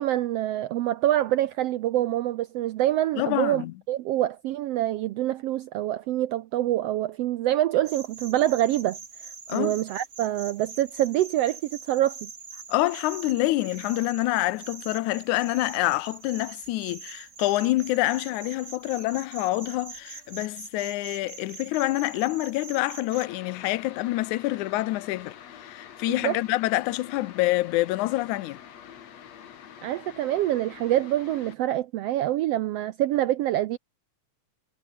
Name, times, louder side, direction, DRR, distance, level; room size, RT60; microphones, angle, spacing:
voice 1, 0.0-9.0 9.5-12.3 26.1-26.4 29.8-33.8, right 13 dB, 80° right, 1.4 m, -26 dB
voice 2, 3.2-3.7 9.5-9.7 12.7-28.6, left 18 dB, 85° left, 2.1 m, -27 dB
sound 1, 7.8-23.3, right 5 dB, 30° right, 1.6 m, -44 dB
sound 2, 23.1-31.6, left 9 dB, 60° left, 2.9 m, -46 dB
omnidirectional pair, 3.5 m